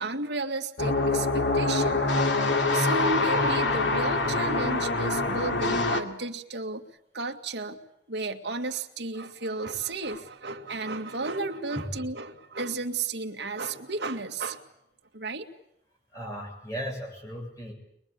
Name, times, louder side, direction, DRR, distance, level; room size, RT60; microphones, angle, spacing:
voice 1, 0.0-2.5 2.7-6.8 7.1-7.8 8.1-14.6 15.1-15.5, right 3 dB, 75° right, 4 dB, 2.1 m, -33 dB
sound 1, 0.8-6.0, left 2 dB, 85° left, 2.5 m, -25 dB
voice 2, 16.1-17.7, equal, 15° left, 1 dB, 7.6 m, -36 dB
23.5 x 23.0 x 8.6 m, 0.78 s
head